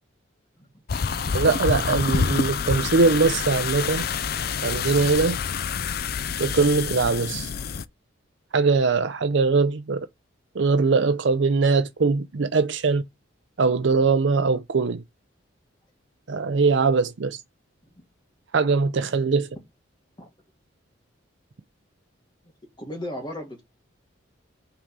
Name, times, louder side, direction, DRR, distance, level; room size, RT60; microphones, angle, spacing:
sound 1, 0.9-7.8, left 6 dB, 50° left, 0.4 m, -27 dB
voice 1, 1.3-4.0 4.6-5.4 6.4-7.5 8.5-10.1 10.5-13.0 13.6-15.0 16.3-17.4 18.5-19.5, right 4 dB, 65° right, 0.5 m, -21 dB
voice 2, 22.8-23.6, left 1 dB, 20° left, 1.8 m, -34 dB
5.6 x 3.7 x 5.3 m
head